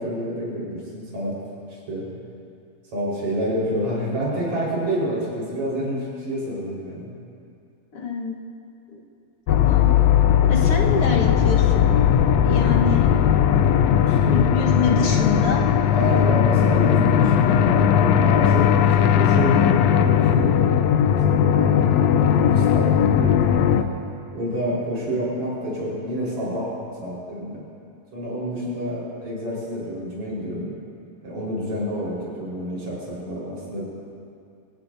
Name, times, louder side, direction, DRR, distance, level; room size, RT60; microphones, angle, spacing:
voice 1, 0.0-1.4 1.7-2.1 2.9-7.1 14.0-14.5 15.9-20.7 21.1-23.9 24.3-26.7 27.0-27.6 28.1-30.7 31.2-33.8, equal, 70° right, -6 dB, 5.9 m, -28 dB
voice 2, 7.9-8.4 8.9-9.0 9.5-10.0 10.5-12.1 12.4-13.1 14.3-15.6, left 3 dB, 55° left, -1 dB, 2.1 m, -26 dB
sound 1, 9.5-23.8, left 9 dB, 80° left, 1.8 m, -18 dB
25.0 x 16.5 x 2.7 m, 2.4 s
omnidirectional pair, 3.3 m